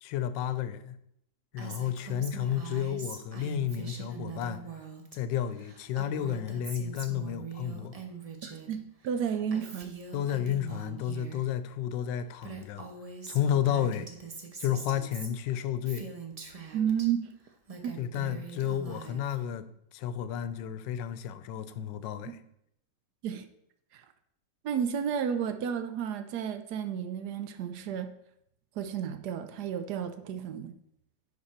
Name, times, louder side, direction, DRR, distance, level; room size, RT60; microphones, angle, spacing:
voice 1, 0.0-1.0 1.5-4.6 5.1-8.0 10.1-12.8 13.3-14.1 14.6-16.1 18.0-19.7 19.9-22.4, left 10 dB, 90° left, 1.3 m, -31 dB
Female speech woman speaking, 1.6-5.2 5.4-8.7 9.0-11.4 12.1-12.2 12.4-17.1 17.5-19.4, right 5 dB, 40° right, 0.5 m, -43 dB
voice 2, 8.4-9.9 16.7-17.3 17.8-18.0 22.2-22.3 23.2-23.5 23.9-24.0 24.6-28.1 28.8-30.7, right 8 dB, 70° right, 1.1 m, -32 dB
10.5 x 4.3 x 4.3 m
omnidirectional pair, 1.9 m